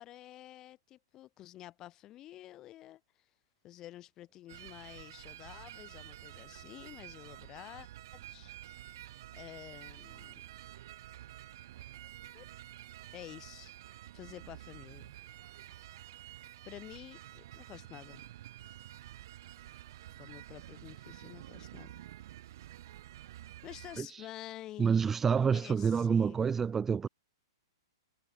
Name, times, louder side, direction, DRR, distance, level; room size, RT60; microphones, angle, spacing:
voice 1, 0.0-3.3 3.6-9.0 9.3-10.4 12.3-12.5 13.1-13.7 14.1-15.1 16.6-18.3 20.2-21.9 23.6-26.5, left 14 dB, 20° left, 2.1 m, -50 dB
sound 1, 4.5-24.0, right 13 dB, 55° right, 0.9 m, -50 dB
voice 2, 24.0-24.3 24.8-27.1, right 6 dB, 10° right, 0.3 m, -28 dB
hypercardioid pair, 160°, 2 cm